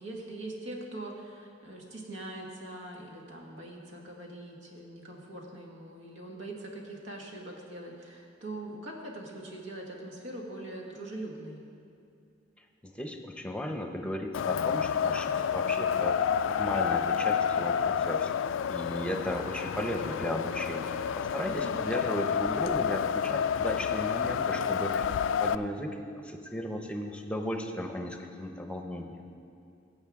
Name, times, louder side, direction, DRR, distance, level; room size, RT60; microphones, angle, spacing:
voice 1, 0.0-11.6 21.4-21.8, right 1 dB, 80° right, -1 dB, 1.7 m, -42 dB
voice 2, 12.8-25.1 25.4-29.1, left 1 dB, 5° left, 3 dB, 0.8 m, -35 dB
Wind, 14.3-25.6, left 7 dB, 85° left, 0.3 m, -29 dB
18.5 x 7.8 x 3.6 m, 2.5 s
head